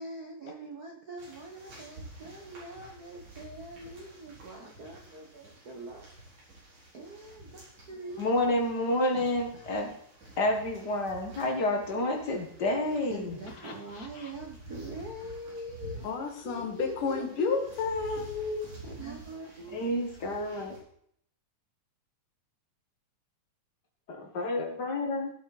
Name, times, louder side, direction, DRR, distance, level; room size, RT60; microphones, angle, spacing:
voice 1, 0.0-6.1 6.9-7.6 7.9-8.3 9.0-9.9 13.1-16.1 16.4-17.7 18.8-19.8, right 1 dB, 85° right, 1 dB, 0.8 m, -43 dB
sound 1, 1.2-20.8, right 1 dB, 65° right, 6.0 m, -50 dB
voice 2, 8.2-9.9 10.4-14.3 19.7-20.7 24.1-25.3, left 1 dB, 40° left, 2 dB, 1.7 m, -30 dB
voice 3, 16.0-18.7, left 5 dB, 75° left, 4 dB, 3.2 m, -31 dB
16.0 x 8.3 x 4.2 m, 0.69 s
omnidirectional pair, 3.8 m